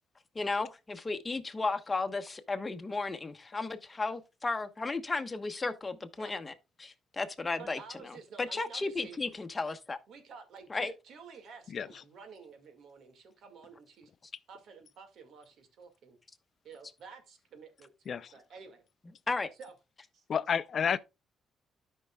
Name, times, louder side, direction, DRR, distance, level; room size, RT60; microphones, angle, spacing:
voice 1, 0.3-6.5 6.8-7.8 8.0-10.0 10.7-10.9 19.3-19.5, left 3 dB, 25° left, 1.1 m, -34 dB
voice 2, 7.6-9.2 10.1-14.1 14.5-16.2 16.6-18.8 19.6-19.7 20.1-20.2, right 5 dB, 70° right, 2.0 m, -51 dB
voice 3, 20.3-21.0, left 7 dB, 55° left, 0.5 m, -30 dB
13.0 x 5.5 x 2.3 m
cardioid pair, 90°, 0 cm